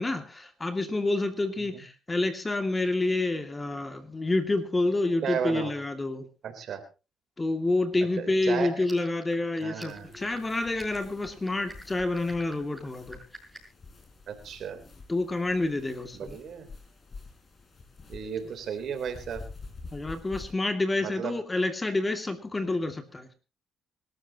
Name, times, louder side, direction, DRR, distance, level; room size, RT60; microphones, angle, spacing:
voice 1, 0.0-6.3 7.4-13.2 15.1-16.4 19.9-23.3, left 2 dB, 20° left, 7 dB, 2.4 m, -28 dB
voice 2, 5.2-5.7 6.4-6.8 8.2-8.8 9.6-10.1 14.3-14.8 16.1-16.7 18.1-19.4 21.0-21.3, right 7 dB, 65° right, 8 dB, 3.6 m, -34 dB
sound 1, 8.8-13.8, right 1 dB, ahead, 6.5 m, -48 dB
sound 2, 9.9-20.5, left 3 dB, 40° left, 5.9 m, -48 dB
25.0 x 13.5 x 3.0 m, 0.32 s
cardioid pair, 90°, 0 cm